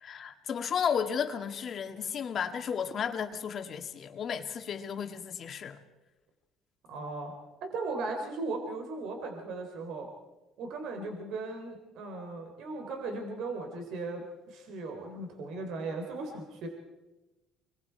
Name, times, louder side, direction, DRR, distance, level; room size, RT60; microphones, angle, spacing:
voice 1, 0.0-5.8, left 7 dB, 45° left, 1.9 m, -33 dB
voice 2, 6.9-7.3 7.6-10.1 10.6-16.7, right 3 dB, 70° right, 3.9 m, -37 dB
26.5 x 21.5 x 4.7 m
cardioid pair, 115°, 0 cm